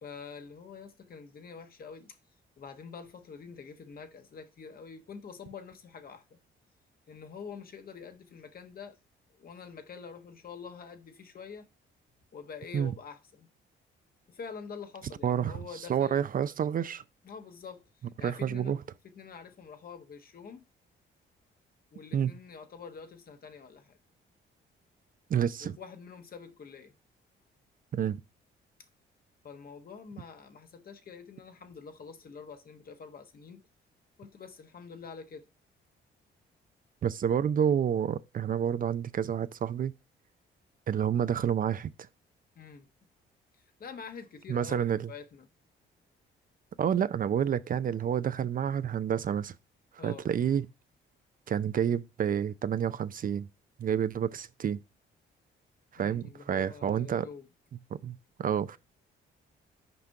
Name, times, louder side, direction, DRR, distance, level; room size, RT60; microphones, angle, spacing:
voice 1, 0.0-2.2 2.6-6.4 7.1-9.0 9.3-11.7 12.3-13.5 14.3-16.3 17.2-17.8 18.2-18.7 19.0-20.6 21.9-24.0 25.6-26.9 29.4-33.6 34.2-35.4 42.6-42.9 43.8-45.5 50.0-50.3 56.0-57.5, left 6 dB, 50° left, 1.2 m, -46 dB
voice 2, 15.2-17.0 18.2-18.8 22.1-22.3 25.3-25.8 27.9-28.2 37.0-39.9 40.9-41.9 44.5-45.1 46.8-49.5 50.0-50.7 51.5-53.5 53.8-54.8 55.9-57.3 58.0-58.8, right 8 dB, 45° right, 0.5 m, -29 dB
5.9 x 5.1 x 4.6 m
cardioid pair, 90°, 20 cm